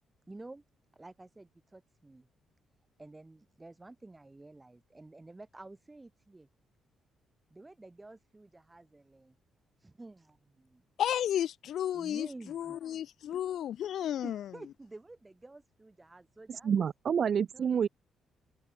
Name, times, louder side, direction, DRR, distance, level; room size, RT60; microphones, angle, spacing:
voice 1, 0.3-0.6 0.9-2.3 3.0-6.5 7.5-9.4 10.0-10.8 11.9-12.8 13.3-13.4 14.2-16.7 17.5-17.8, right 2 dB, 15° right, 7.6 m, -50 dB
voice 2, 11.0-14.5, left 10 dB, 70° left, 1.5 m, -33 dB
voice 3, 16.5-17.9, right 7 dB, 50° right, 0.4 m, -28 dB
cardioid pair, 90°, 0 cm